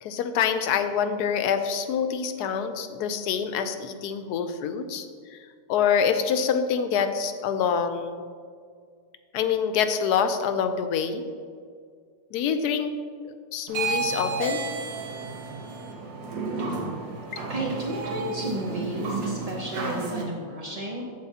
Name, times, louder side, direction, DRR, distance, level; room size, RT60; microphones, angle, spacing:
voice 1, 0.0-5.4 5.7-8.2 9.3-11.2 12.3-13.0 13.2-14.7, left 7 dB, 90° left, 9 dB, 1.1 m, -26 dB
sound 1, 13.7-20.2, right 4 dB, 85° right, 1.5 m, -31 dB
voice 2, 17.5-21.0, right 1 dB, 50° right, -2 dB, 0.4 m, -33 dB
14.0 x 4.9 x 2.8 m, 2.1 s
omnidirectional pair, 1.7 m